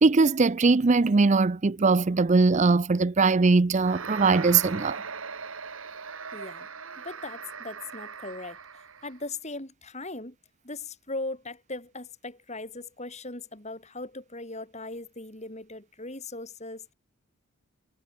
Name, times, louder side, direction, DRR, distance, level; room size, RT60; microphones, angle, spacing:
voice 1, 0.0-5.0, right 4 dB, 35° right, 0.5 m, -21 dB
sound 1, 3.8-9.2, right 5 dB, 70° right, 2.0 m, -39 dB
voice 2, 6.3-6.7 7.0-8.6 9.0-10.4 10.6-16.9, left 2 dB, 30° left, 7.0 m, -39 dB
head